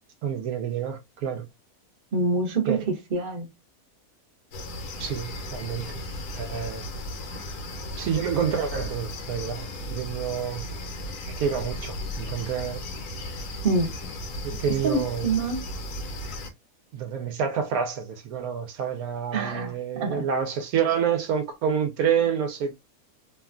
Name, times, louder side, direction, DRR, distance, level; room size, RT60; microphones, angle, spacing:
voice 1, 0.2-1.4 2.7-2.8 5.0-5.9 6.3-6.9 8.0-10.6 11.4-12.8 14.4-15.3 16.9-22.8, right 7 dB, 80° right, 1.1 m, -28 dB
voice 2, 2.1-3.5 13.6-13.9 14.8-15.6 19.3-20.3, right 3 dB, 40° right, 0.8 m, -26 dB
sound 1, 4.5-16.5, left 1 dB, 85° left, 1.4 m, -35 dB
3.1 x 2.3 x 2.4 m
omnidirectional pair, 1.6 m